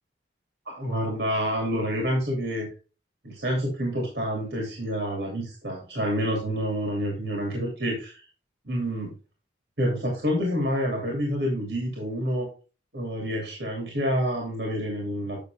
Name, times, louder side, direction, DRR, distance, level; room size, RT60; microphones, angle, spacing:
voice 1, 0.7-2.7 3.2-8.2 8.6-9.1 9.8-12.5 12.9-15.4, equal, 65° right, -1 dB, 2.7 m, -28 dB
8.5 x 6.4 x 3.4 m, 0.35 s
head